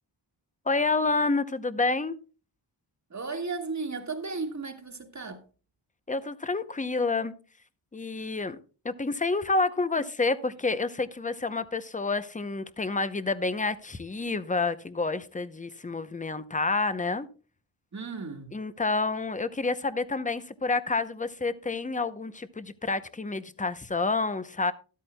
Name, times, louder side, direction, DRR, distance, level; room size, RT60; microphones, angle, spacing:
voice 1, 0.7-2.2 6.1-7.3 7.9-8.6 8.8-17.3 18.5-24.7, left 3 dB, 15° left, 0.7 m, -29 dB
voice 2, 3.1-5.4 17.9-18.5, right 4 dB, 35° right, 1.6 m, -35 dB
13.0 x 12.5 x 2.2 m
wide cardioid pair, 95°, 46 cm